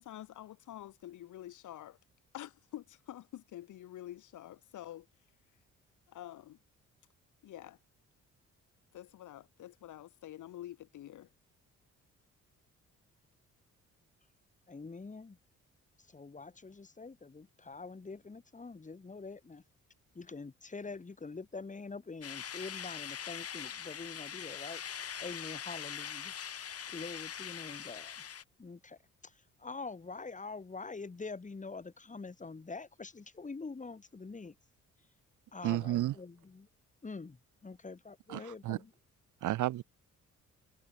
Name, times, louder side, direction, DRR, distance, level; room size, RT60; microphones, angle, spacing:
voice 1, 0.0-2.0 2.3-5.1 6.1-6.6 7.4-7.8 8.9-11.3, left 13 dB, 80° left, 6.0 m, -47 dB
voice 2, 14.7-15.4 16.1-19.6 20.1-24.8 25.2-26.3 26.9-28.3 28.6-29.3 29.6-34.6 35.5-36.7 37.0-38.9, left 4 dB, 25° left, 4.0 m, -45 dB
sound 1, 22.2-28.4, left 8 dB, 50° left, 2.6 m, -42 dB
voice 3, 35.6-36.2 38.3-38.8 39.4-39.8, right 14 dB, 80° right, 1.8 m, -32 dB
cardioid pair, 90°, 30 cm